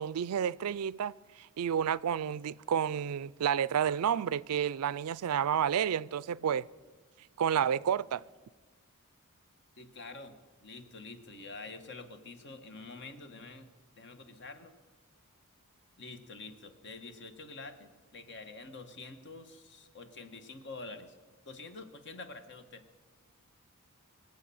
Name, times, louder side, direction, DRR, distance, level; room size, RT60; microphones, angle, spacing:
voice 1, 0.0-6.7 7.4-8.2, right 8 dB, 75° right, 0.4 m, -30 dB
voice 2, 9.8-13.6 14.0-14.7 16.0-21.2 21.4-22.8, left 3 dB, 55° left, 1.4 m, -47 dB
23.5 x 8.2 x 7.1 m
head